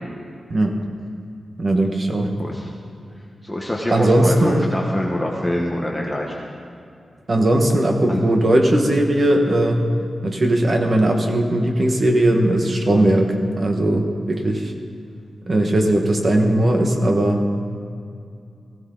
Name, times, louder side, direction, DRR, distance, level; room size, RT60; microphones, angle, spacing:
voice 1, 1.6-2.3 3.9-4.7 7.3-9.8 10.2-14.7 15.5-17.4, right 1 dB, 35° right, 3 dB, 1.6 m, -18 dB
voice 2, 2.4-2.7 3.4-6.3 8.1-8.2, left 1 dB, 5° left, -2 dB, 1.2 m, -25 dB
19.0 x 15.5 x 4.0 m, 2.5 s
wide cardioid pair, 150°, 0 cm